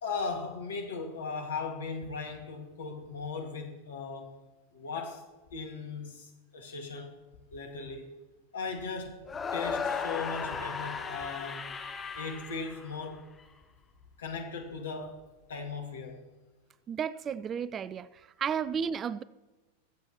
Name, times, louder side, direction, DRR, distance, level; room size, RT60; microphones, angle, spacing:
voice 1, 0.0-4.4 4.7-5.2 5.5-7.2 7.5-8.1 8.5-9.2 9.5-11.7 12.1-13.2 14.2-15.2 15.5-16.2, left 4 dB, 65° left, 1.9 m, -38 dB
sound 1, 9.3-13.4, left 5 dB, 20° left, 1.1 m, -36 dB
voice 2, 16.9-18.1 18.4-19.2, right 7 dB, 25° right, 0.3 m, -32 dB
22.5 x 8.0 x 3.0 m
figure-of-eight pair, 90°, 0 cm